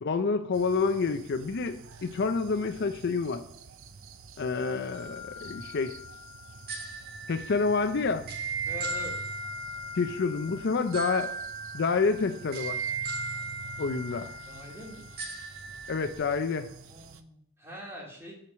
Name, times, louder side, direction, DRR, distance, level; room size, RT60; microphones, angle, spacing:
voice 1, 0.0-3.4 4.4-6.0 7.3-8.3 10.0-11.3 11.7-12.8 13.8-14.3 15.9-16.7, left 4 dB, 55° left, 9 dB, 0.5 m, -28 dB
sound 1, 0.5-17.2, right 4 dB, 75° right, 0.7 m, -48 dB
sound 2, 4.9-16.1, right 3 dB, 50° right, 1.7 m, -38 dB
voice 2, 8.7-9.2 14.5-15.0 16.9-18.3, equal, 10° right, -3 dB, 2.7 m, -43 dB
8.8 x 4.6 x 6.2 m, 0.66 s
head